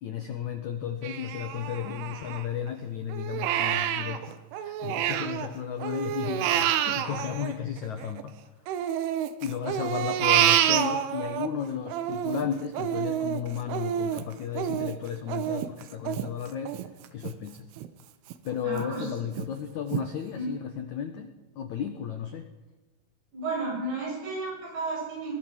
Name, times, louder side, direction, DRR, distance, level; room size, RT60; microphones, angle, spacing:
voice 1, 0.0-8.3 9.4-16.8 17.1-17.7 18.4-22.5, left 8 dB, 80° left, 7 dB, 1.7 m, -34 dB
Crying sobbing, 1.0-2.7 3.1-5.5 5.8-8.2 8.7-11.5 11.9-17.3 17.8-17.9 18.3-18.9 19.4-19.5 19.9-20.0, right 11 dB, 90° right, 3.6 m, -28 dB
voice 2, 18.6-19.0 20.4-20.5 23.3-25.3, right 2 dB, 55° right, -4 dB, 10.0 m, -32 dB
22.5 x 16.0 x 7.5 m, 1.2 s
omnidirectional pair, 5.4 m